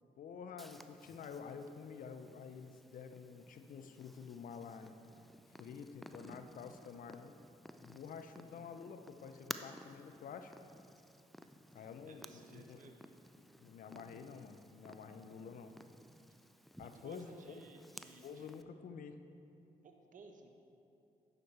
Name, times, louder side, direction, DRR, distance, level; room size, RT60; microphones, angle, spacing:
voice 1, 0.2-4.9 5.5-7.3 7.8-10.5 11.7-12.8 13.4-15.7 16.8-17.6 18.2-19.2, left 6 dB, 60° left, 8 dB, 0.6 m, -49 dB
Purr, 0.6-18.6, equal, ahead, 0.5 m, -55 dB
voice 2, 11.8-13.0 16.9-18.5 19.8-20.5, right 4 dB, 55° right, 4 dB, 1.0 m, -58 dB
9.4 x 6.5 x 4.3 m, 2.8 s
hypercardioid pair, 45°, 16 cm